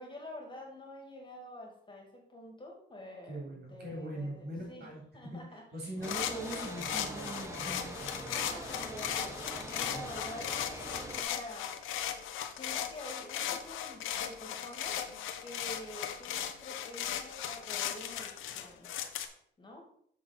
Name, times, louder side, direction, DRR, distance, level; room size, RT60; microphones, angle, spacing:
voice 1, 0.0-4.9 5.1-5.6 7.6-11.7 12.5-15.1 15.4-19.0 19.6-19.8, left 1 dB, 25° left, 1 dB, 2.2 m, -48 dB
voice 2, 3.3-8.1 9.9-10.0, right 1 dB, 55° right, -2 dB, 3.6 m, -41 dB
sound 1, 6.0-19.3, left 10 dB, 90° left, 0.8 m, -37 dB
sound 2, 6.0-11.2, right 1 dB, 15° right, 1.1 m, -43 dB
7.5 x 4.2 x 5.5 m, 0.67 s
cardioid pair, 90°, 20 cm